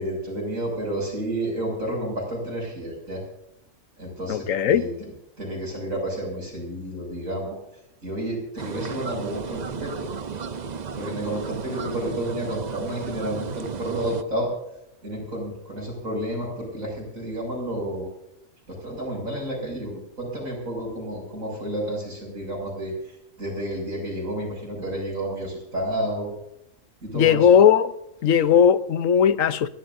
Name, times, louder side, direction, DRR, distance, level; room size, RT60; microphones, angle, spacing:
voice 1, 0.0-3.2 4.0-4.9 5.4-7.6 8.0-10.1 10.9-14.5 15.0-18.1 18.7-22.9 23.4-26.3 27.0-27.5, right 1 dB, 80° right, 7.0 m, -30 dB
voice 2, 4.3-4.8 27.1-27.9 28.2-29.7, left 8 dB, 75° left, 1.2 m, -18 dB
sound 1, 8.6-14.2, right 6 dB, 40° right, 0.7 m, -34 dB
30.0 x 12.0 x 2.7 m
omnidirectional pair, 1.4 m